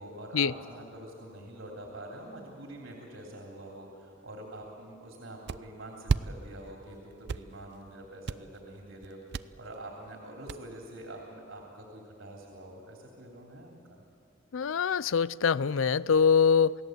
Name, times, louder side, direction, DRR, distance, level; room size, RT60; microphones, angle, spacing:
voice 1, 0.0-9.2 9.6-14.0, right 1 dB, 80° right, 0 dB, 3.3 m, -45 dB
sound 1, 5.5-5.6 6.1-6.2 6.6-6.9 7.1-7.9 8.2-8.6 9.0-9.4 9.7-9.8 10.1-10.2 10.5-11.0, right 4 dB, 55° right, 0.5 m, -30 dB
voice 2, 14.5-16.8, left 6 dB, 90° left, 19 dB, 0.5 m, -24 dB
28.0 x 17.5 x 8.0 m, 2.5 s
head